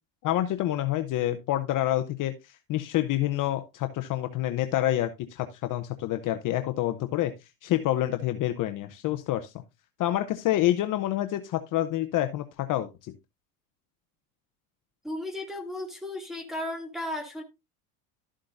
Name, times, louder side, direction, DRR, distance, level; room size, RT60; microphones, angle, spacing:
voice 1, 0.2-9.5 10.0-12.9, left 13 dB, 40° left, 0.8 m, -27 dB
voice 2, 15.0-17.4, left 1 dB, ahead, 2.6 m, -35 dB
12.5 x 7.5 x 2.6 m
supercardioid pair, 130°, 47 cm